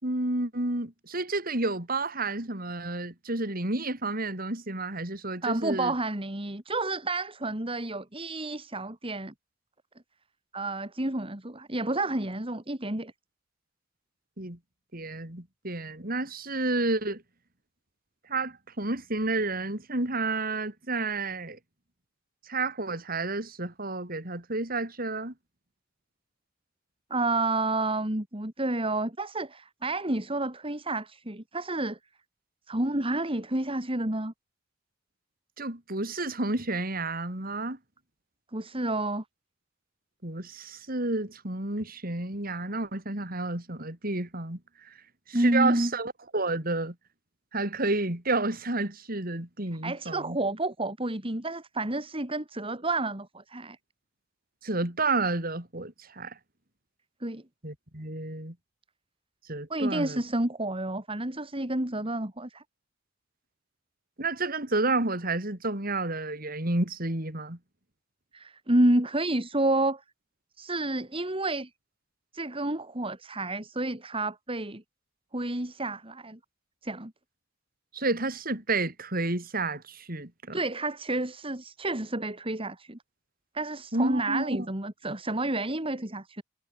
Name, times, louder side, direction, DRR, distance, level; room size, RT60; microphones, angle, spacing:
voice 1, 0.0-5.9 14.4-14.6 14.9-17.2 18.3-21.6 22.5-25.3 35.6-37.8 40.2-44.9 45.3-46.9 47.5-50.4 54.6-56.4 57.6-58.5 59.5-60.2 64.2-67.6 77.9-80.6 83.9-84.6, right 2 dB, 50° right, 4.9 m, -30 dB
voice 2, 5.4-9.3 10.5-13.1 27.1-32.0 32.7-34.3 38.5-39.2 45.3-45.9 49.8-53.8 57.2-57.4 59.7-62.6 68.3-70.0 70.6-71.7 72.3-74.8 75.3-76.4 76.8-77.1 80.5-83.0 83.5-86.4, right 2 dB, 30° right, 3.2 m, -30 dB
head